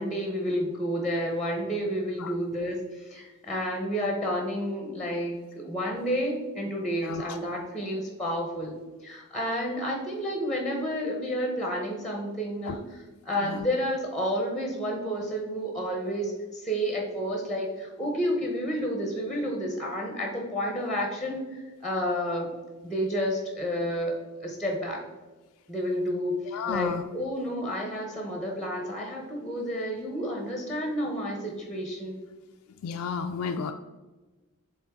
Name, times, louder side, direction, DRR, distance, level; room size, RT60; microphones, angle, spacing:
voice 1, 0.0-5.4 5.6-8.7 9.0-22.5 22.8-25.0 25.7-26.4 26.6-32.2, equal, ahead, 1 dB, 0.8 m, -30 dB
voice 2, 7.0-7.4 12.7-12.8 13.4-13.7 26.5-27.0 32.8-33.7, left 6 dB, 75° left, 5 dB, 0.3 m, -32 dB
7.8 x 3.5 x 3.6 m, 1.2 s
head